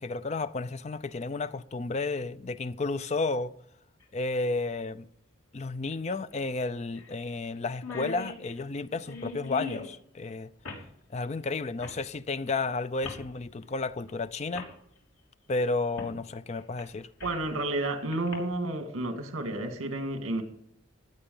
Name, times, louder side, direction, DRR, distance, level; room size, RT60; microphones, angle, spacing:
voice 1, 0.0-3.5 4.1-5.1 5.5-10.5 11.1-14.7 15.5-17.1, left 3 dB, 30° left, 0.4 m, -32 dB
sound 1, 4.0-4.1 5.9-6.0 6.3-6.4 7.0-7.2 7.4-7.5 7.7-9.9 10.6-10.9 11.8-12.0 13.0-13.3 14.1-14.2 14.5-14.7 16.0-16.2 16.6-17.5 18.1-18.3, left 3 dB, 80° left, 3.3 m, -40 dB
voice 2, 17.2-20.4, right 2 dB, 75° right, 2.1 m, -31 dB
15.5 x 9.8 x 5.5 m
head